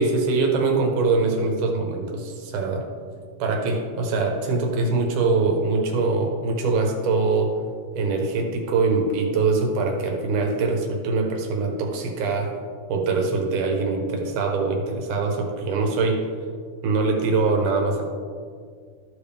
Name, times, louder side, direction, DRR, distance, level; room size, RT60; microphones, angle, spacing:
voice 1, 0.0-2.8 3.4-7.5 8.0-12.5 12.9-16.3 16.8-18.0, right 3 dB, 85° right, 2 dB, 2.6 m, -23 dB
14.0 x 5.1 x 3.4 m, 2.1 s
omnidirectional pair, 3.5 m